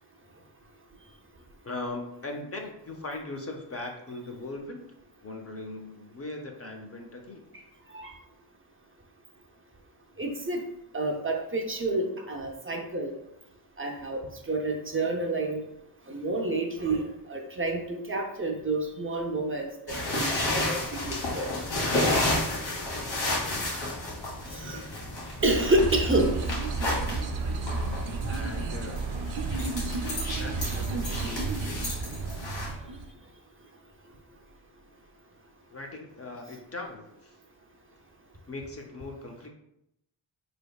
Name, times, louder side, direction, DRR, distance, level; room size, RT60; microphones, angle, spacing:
voice 1, 1.6-4.9 5.2-7.4 24.6-25.1 28.2-29.0 30.3-31.8 35.7-37.4 38.5-39.5, left 2 dB, 35° left, 2 dB, 0.5 m, -39 dB
voice 2, 10.2-10.6 10.9-13.1 13.8-14.2 14.5-15.6 16.1-21.5 24.5-24.8 25.4-26.4, right 2 dB, 30° right, 1 dB, 0.5 m, -29 dB
sound 1, 19.9-32.7, left 1 dB, 80° left, 1.4 m, -32 dB
sound 2, 25.4-33.1, right 3 dB, 85° right, 0.6 m, -32 dB
4.6 x 3.4 x 2.3 m, 0.81 s
wide cardioid pair, 110°, 44 cm